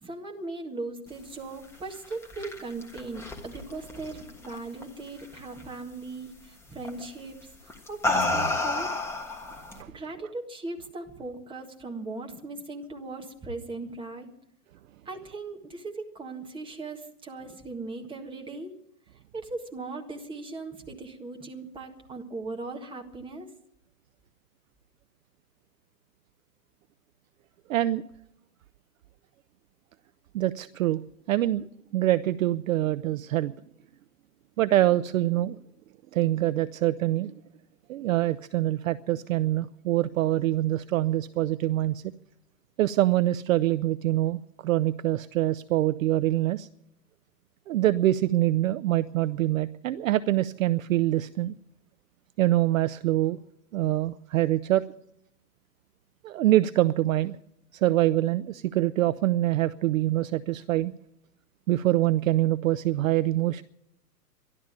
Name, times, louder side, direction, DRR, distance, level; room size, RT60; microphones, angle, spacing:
voice 1, 0.0-8.9 9.9-14.3 15.0-18.7 19.3-23.5, right 3 dB, 10° right, 2 dB, 1.6 m, -38 dB
sound 1, 1.9-4.8 5.2-5.6 6.8-7.1 7.7-9.8, left 2 dB, 5° left, 1.4 m, -30 dB
voice 2, 27.7-28.0 30.3-31.0 31.3-33.5 34.6-35.6 36.1-37.3 37.9-42.0 42.8-46.7 47.7-51.6 52.4-53.4 53.7-54.9 56.2-57.4 57.7-60.9 61.7-63.6, right 14 dB, 55° right, 14 dB, 0.6 m, -25 dB
13.0 x 12.0 x 8.8 m, 0.79 s
hypercardioid pair, 135°, 48 cm